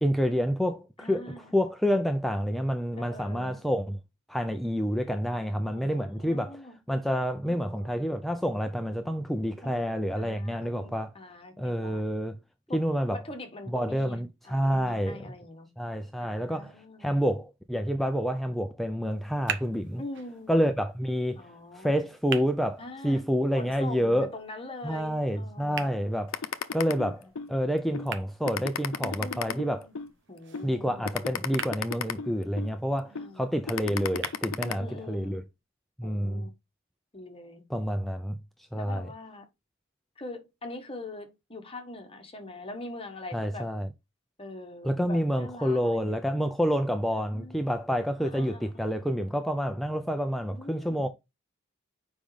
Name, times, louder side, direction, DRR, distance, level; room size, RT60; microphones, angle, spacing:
voice 1, 0.0-4.0 4.3-6.6 6.9-11.1 11.6-12.4 12.7-13.2 13.7-15.3 15.8-16.7 17.0-20.0 20.5-21.4 21.7-24.3 24.8-26.4 26.7-29.9 30.6-35.4 36.0-36.5 37.7-38.4 38.7-39.1 43.3-43.9 44.8-51.1, equal, ahead, 0.5 m, -28 dB
voice 2, 1.0-1.5 3.0-3.6 5.7-6.8 7.5-8.1 9.6-12.0 12.7-12.8 13.1-15.7 16.2-17.2 20.0-20.6 21.4-22.1 22.8-23.2 23.6-25.9 26.8-27.3 29.0-30.0 30.3-31.3 33.0-33.5 34.6-35.4 36.0-36.5 37.1-37.6 38.8-39.4 40.2-43.7 44.4-46.2 47.1-47.7 48.2-49.1 50.5-51.1, left 2 dB, 25° left, 1.4 m, -43 dB
sound 1, 19.0-35.0, right 7 dB, 60° right, 1.0 m, -44 dB
sound 2, 26.3-27.5 27.9-28.1 28.5-30.1 30.5-30.7 31.0-32.7 33.1-33.3 33.7-34.7, left 6 dB, 75° left, 0.7 m, -33 dB
7.4 x 5.1 x 3.3 m
head